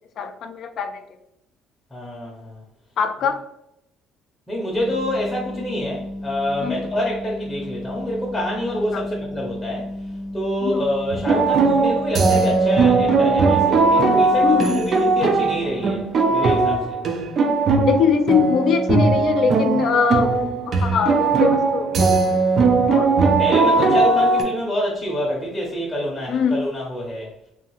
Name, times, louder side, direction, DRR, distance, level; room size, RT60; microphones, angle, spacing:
voice 1, 0.2-1.0 3.0-3.4 6.6-6.8 8.9-9.0 10.6-10.8 14.4-14.8 17.9-20.3 20.7-22.1 22.9-23.1 26.3-26.6, left 6 dB, 50° left, 7 dB, 0.3 m, -22 dB
voice 2, 1.9-2.6 4.5-9.9 10.3-16.0 16.3-17.0 23.4-27.3, left 1 dB, 10° left, -5 dB, 0.7 m, -26 dB
sound 1, 4.7-16.6, left 1 dB, 65° right, 0.8 m, -34 dB
sound 2, 11.1-24.4, right 3 dB, 40° right, 0.4 m, -19 dB
2.7 x 2.4 x 2.9 m, 0.81 s
cardioid pair, 140°, 0 cm